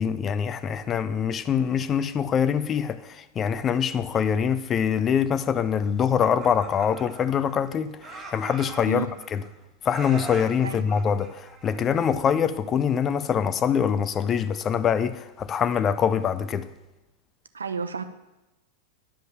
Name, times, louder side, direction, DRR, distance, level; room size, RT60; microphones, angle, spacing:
voice 1, 0.0-9.1 9.3-9.4 9.8-16.7, left 7 dB, 25° left, 0.5 m, -24 dB
Laughter, 6.0-7.7 8.0-9.5 9.9-12.1, right 3 dB, 25° right, 1.8 m, -42 dB
voice 2, 17.5-18.0, right 6 dB, 75° right, 0.7 m, -31 dB
10.5 x 5.4 x 7.5 m
figure-of-eight pair, 90°, 0 cm